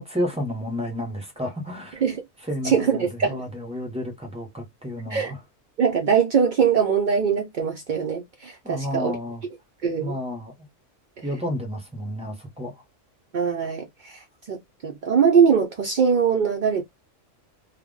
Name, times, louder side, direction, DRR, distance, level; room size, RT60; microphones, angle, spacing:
voice 1, 0.0-2.0 2.4-5.4 8.6-9.4 10.0-10.7 11.2-12.7, left 1 dB, 10° right, 0.4 m, -31 dB
voice 2, 2.6-3.4 5.1-5.3 5.8-9.1 9.8-10.2 11.2-11.3 13.3-16.8, right 6 dB, 65° right, 0.4 m, -22 dB
2.1 x 2.1 x 3.6 m
omnidirectional pair, 1.3 m